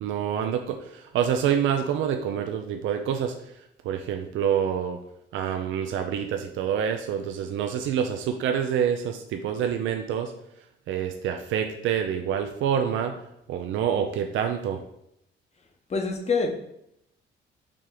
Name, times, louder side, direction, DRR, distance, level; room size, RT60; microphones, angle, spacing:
voice 1, 0.0-3.3 3.8-5.0 5.3-10.3 10.9-13.1 13.5-14.8, right 8 dB, 75° right, 5 dB, 0.5 m, -27 dB
voice 2, 15.9-16.6, left 4 dB, 35° left, 3 dB, 0.9 m, -26 dB
4.9 x 2.9 x 3.8 m, 0.77 s
cardioid pair, 90°, 20 cm